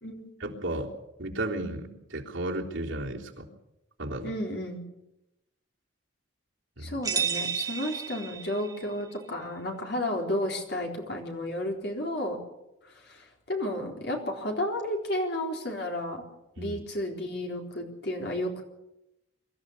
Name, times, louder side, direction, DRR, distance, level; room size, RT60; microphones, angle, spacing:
voice 1, 0.4-3.5 4.0-4.3 6.8-7.0 16.6-16.8, right 1 dB, 80° right, -2 dB, 3.5 m, -34 dB
voice 2, 4.2-4.8 6.8-12.4 12.9-16.2 16.6-18.6, left 1 dB, 55° left, 1 dB, 4.1 m, -32 dB
sound 1, 7.0-8.9, right 6 dB, 20° right, 1.3 m, -31 dB
24.0 x 14.0 x 8.2 m, 0.89 s
head